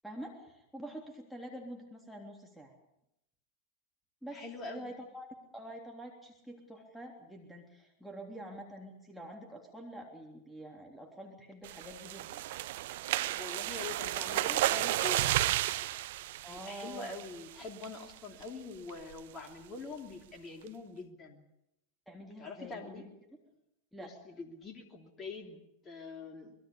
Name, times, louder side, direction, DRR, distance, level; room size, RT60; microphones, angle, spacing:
voice 1, 0.0-2.7 4.2-5.3 5.5-12.4 16.4-17.1 22.1-23.1 23.9-24.1, right 1 dB, ahead, 2 dB, 3.3 m, -47 dB
voice 2, 4.3-4.9 13.2-15.2 16.5-21.4 22.4-23.1 24.0-26.5, left 3 dB, 20° left, 4 dB, 2.9 m, -44 dB
sound 1, 11.6-17.4 17.8-18.1 18.4-18.5 18.9-19.2, right 15 dB, 55° right, 0.8 m, -32 dB
25.0 x 21.5 x 6.9 m, 0.85 s
figure-of-eight pair, 90°, 0 cm